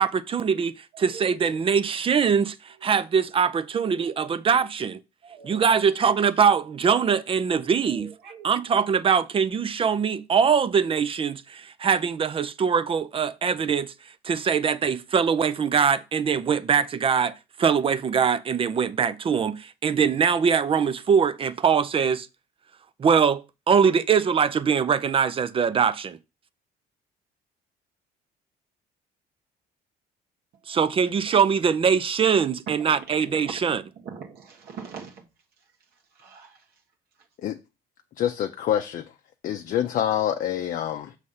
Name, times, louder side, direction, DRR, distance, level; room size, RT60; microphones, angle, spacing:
voice 1, 0.0-5.0 5.4-8.1 8.4-13.9 14.2-22.3 23.0-26.2 30.7-33.8, right 6 dB, 35° right, 0.5 m, -22 dB
voice 2, 5.2-5.6 7.6-8.5 32.7-33.1 34.0-35.2 36.2-36.6, right 6 dB, 65° right, 1.4 m, -42 dB
voice 3, 38.2-39.1 39.4-41.2, left 10 dB, 55° left, 0.5 m, -26 dB
6.4 x 3.2 x 5.5 m
cardioid pair, 110°, 17 cm